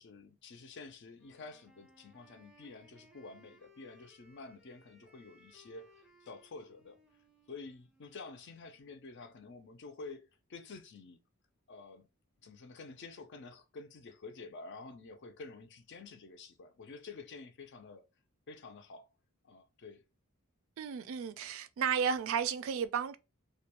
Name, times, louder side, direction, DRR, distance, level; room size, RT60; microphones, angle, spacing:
voice 1, 0.0-7.0 7.5-11.2 11.7-12.1 12.4-18.1 18.5-19.1 19.4-20.0, left 3 dB, 50° left, 0.4 m, -49 dB
Wind instrument woodwind instrument, 1.1-9.0, left 1 dB, 5° right, 0.5 m, -64 dB
voice 2, 20.8-23.2, right 7 dB, 60° right, 0.3 m, -33 dB
2.4 x 2.2 x 2.9 m
head